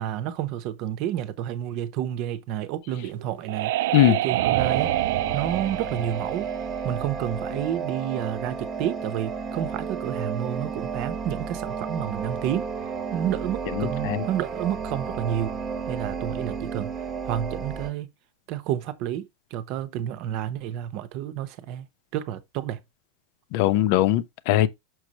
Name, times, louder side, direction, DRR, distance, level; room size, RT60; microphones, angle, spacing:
voice 1, 0.0-3.7 4.1-4.9 5.3-6.5 6.8-12.7 13.1-15.6 15.9-16.9 17.2-18.1 18.5-21.9 22.1-22.8, right 11 dB, 40° right, 0.9 m, -30 dB
sound 1, 2.9-7.5, right 15 dB, 65° right, 0.4 m, -27 dB
sound 2, 4.6-17.9, right 5 dB, 15° right, 1.2 m, -33 dB
voice 2, 13.8-14.2 23.5-24.7, left 14 dB, 45° left, 0.7 m, -20 dB
6.5 x 6.3 x 2.9 m
supercardioid pair, 170°, 0 cm